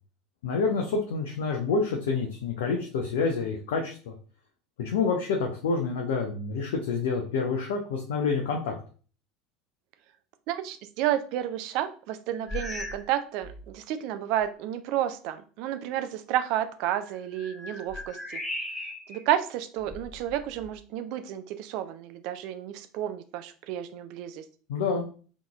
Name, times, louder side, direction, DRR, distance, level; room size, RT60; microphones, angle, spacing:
voice 1, 0.4-4.1 4.8-8.7 24.7-25.1, left 4 dB, 60° left, 1 dB, 0.5 m, -28 dB
voice 2, 10.5-18.4 19.1-24.4, right 12 dB, 50° right, 9 dB, 0.3 m, -31 dB
sound 1, 12.5-13.1 13.4-13.8 14.4-14.5 16.9-19.2 19.8-20.8, left 2 dB, 10° left, 0.7 m, -38 dB
3.6 x 2.9 x 2.3 m, 0.39 s
figure-of-eight pair, 70°, 0 cm